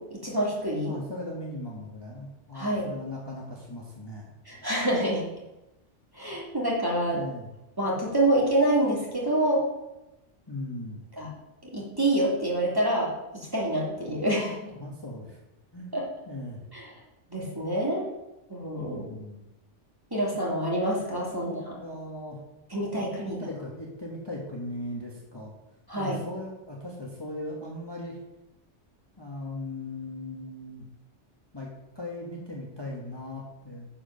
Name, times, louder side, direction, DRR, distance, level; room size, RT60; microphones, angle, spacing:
voice 1, 0.1-0.9 2.5-2.9 4.5-5.3 6.1-7.2 7.8-9.6 11.2-11.3 11.7-14.6 15.9-16.0 16.7-16.8 17.3-18.0 18.5-19.0 20.1-21.7 22.7-23.4 25.9-26.2, right 1 dB, 20° right, -5 dB, 2.8 m, -27 dB
voice 2, 0.8-4.3 7.0-7.5 10.5-11.0 14.7-15.4 15.7-15.9 16.2-16.6 18.8-19.4 21.3-22.4 22.9-25.5 26.0-28.2 29.2-30.9 31.5-31.7 31.9-33.9, left 1 dB, 20° left, -3 dB, 1.4 m, -38 dB
10.0 x 4.9 x 6.5 m, 0.97 s
omnidirectional pair, 1.2 m